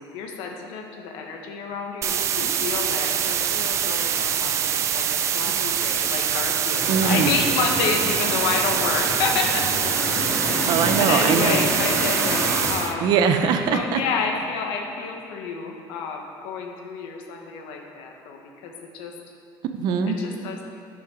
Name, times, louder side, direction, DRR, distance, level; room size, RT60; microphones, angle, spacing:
voice 1, 0.0-10.2 11.0-13.1 13.7-19.1 20.1-20.6, left 5 dB, 80° left, 2 dB, 1.5 m, -29 dB
sound 1, 2.0-12.9, right 9 dB, 35° right, 0.4 m, -24 dB
sound 2, 6.7-12.7, left 1 dB, 15° left, 1.9 m, -29 dB
voice 2, 6.9-7.3 10.7-11.7 12.8-14.0 19.7-20.1, right 6 dB, 50° right, 7 dB, 0.8 m, -22 dB
11.5 x 6.3 x 6.3 m, 2.7 s
cardioid pair, 170°, 9 cm